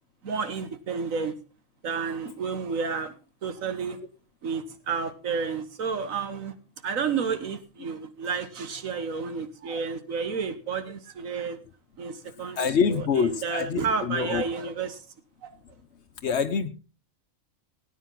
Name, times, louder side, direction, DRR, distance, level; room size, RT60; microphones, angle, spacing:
voice 1, 0.2-1.3 1.8-3.1 3.4-4.0 4.4-6.5 6.8-11.6 12.0-15.0 15.4-15.5, right 5 dB, 75° right, 9 dB, 1.7 m, -31 dB
voice 2, 12.6-14.4 16.2-16.7, left 6 dB, 55° left, 11 dB, 1.2 m, -25 dB
17.5 x 9.4 x 3.9 m, 0.33 s
omnidirectional pair, 1.4 m